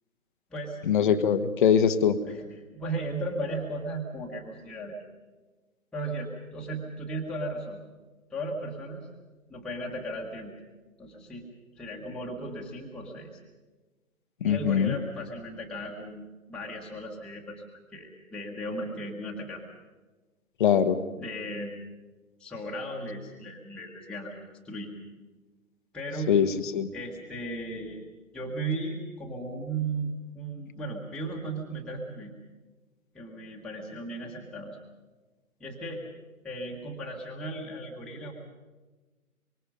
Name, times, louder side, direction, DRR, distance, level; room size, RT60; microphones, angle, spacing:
voice 1, 0.9-2.2 14.4-14.9 20.6-21.0 26.3-26.5 26.7-26.9, left 8 dB, 35° left, 12 dB, 1.2 m, -22 dB
voice 2, 2.7-5.0 5.9-7.8 8.3-9.1 9.5-10.5 11.0-11.4 11.8-13.4 14.4-16.2 16.5-19.6 21.2-21.8 22.4-24.9 25.9-26.3 26.9-28.1 28.3-32.3 33.1-34.8 35.6-36.0 36.4-38.3, right 1 dB, ahead, -3 dB, 1.5 m, -36 dB
24.5 x 24.5 x 5.3 m, 1.2 s
figure-of-eight pair, 135°, 43 cm